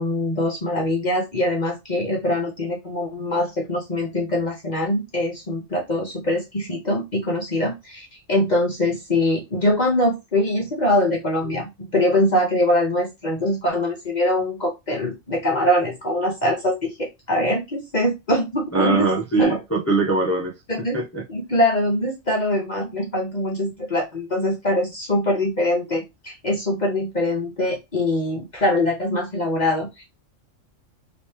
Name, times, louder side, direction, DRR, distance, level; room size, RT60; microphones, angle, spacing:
voice 1, 0.0-19.1 19.4-19.6 20.7-21.0 21.3-30.0, left 1 dB, 40° left, 0.8 m, -23 dB
voice 2, 18.7-20.5 20.9-21.2, right 3 dB, 25° left, 0.3 m, -21 dB
3.0 x 3.0 x 3.4 m
omnidirectional pair, 1.3 m